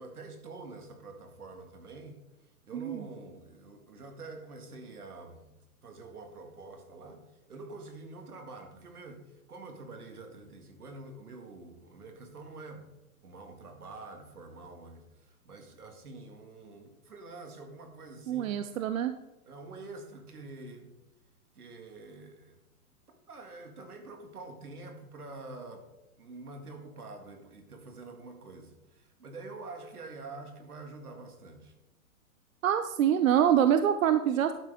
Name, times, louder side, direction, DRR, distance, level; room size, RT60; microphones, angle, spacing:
voice 1, 0.0-2.2 2.6-5.4 5.8-12.9 13.2-18.6 19.5-20.9 21.5-22.6 23.3-25.9 26.2-31.7, right 3 dB, 85° right, 2.1 m, -46 dB
voice 2, 2.7-3.0 18.3-19.1 32.6-34.5, right 9 dB, 65° right, 0.7 m, -25 dB
11.5 x 9.0 x 3.5 m
hypercardioid pair, 120°, 44 cm